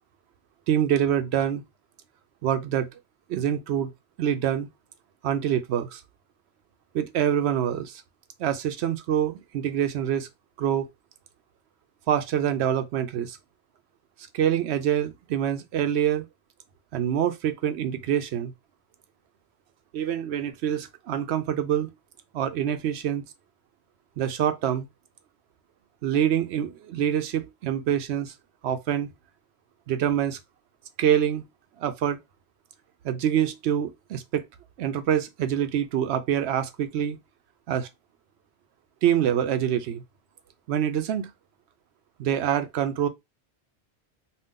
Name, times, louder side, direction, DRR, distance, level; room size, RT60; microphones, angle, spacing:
voice 1, 0.7-1.6 2.4-2.9 3.3-3.9 4.2-4.7 5.2-6.0 6.9-8.0 8.4-10.3 10.6-10.9 12.1-13.4 14.3-16.3 16.9-18.5 19.9-21.9 22.3-23.2 24.2-24.9 26.0-28.3 28.6-29.1 29.9-30.4 31.0-31.5 31.8-32.2 33.0-34.4 34.8-37.2 37.7-37.9 39.0-40.0 40.7-41.3 42.2-43.1, right 9 dB, 80° right, 0.8 m, -25 dB
2.6 x 2.3 x 3.6 m
omnidirectional pair, 1.1 m